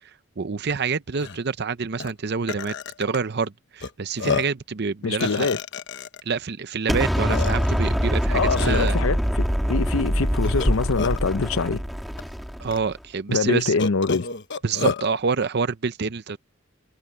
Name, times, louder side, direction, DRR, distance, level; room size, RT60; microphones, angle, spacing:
voice 1, 0.4-5.5 6.3-9.0 12.6-13.8 14.6-16.4, right 5 dB, 55° right, 0.6 m, -27 dB
Burping eructation, 0.7-0.8 1.2-1.4 2.0-2.1 2.5-3.2 3.8-3.9 4.2-4.6 5.2-6.2 6.9-7.0 7.3-7.8 8.6-8.9 10.4-11.3 12.2-12.3 12.7-12.8 13.8-15.1, left 5 dB, 60° left, 1.2 m, -29 dB
voice 2, 5.0-5.6 8.3-11.8 13.3-14.3, left 4 dB, 80° left, 0.7 m, -24 dB
Explosion, 6.9-12.9, equal, ahead, 2.6 m, -24 dB
head